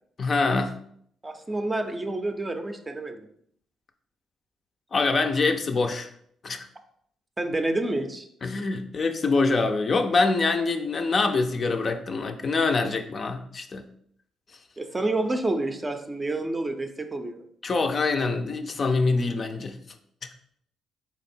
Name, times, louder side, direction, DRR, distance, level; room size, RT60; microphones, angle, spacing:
voice 1, 0.2-0.7 4.9-6.1 6.4-6.7 8.4-13.8 17.6-19.8, left 3 dB, 40° left, 5 dB, 0.5 m, -25 dB
voice 2, 1.2-3.3 7.4-8.3 14.8-17.5, right 2 dB, 20° right, 6 dB, 0.5 m, -29 dB
4.1 x 2.9 x 4.3 m, 0.67 s
cardioid pair, 90°, 0 cm